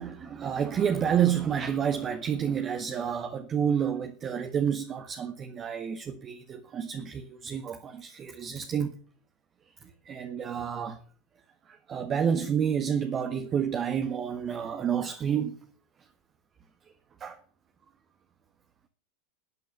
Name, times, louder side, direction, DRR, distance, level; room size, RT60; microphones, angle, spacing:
voice 1, 0.0-8.9 10.0-11.0 11.7-15.6 17.2-17.4, right 8 dB, 30° right, 1.5 m, -29 dB
12.5 x 9.2 x 9.3 m
figure-of-eight pair, 90°, 0 cm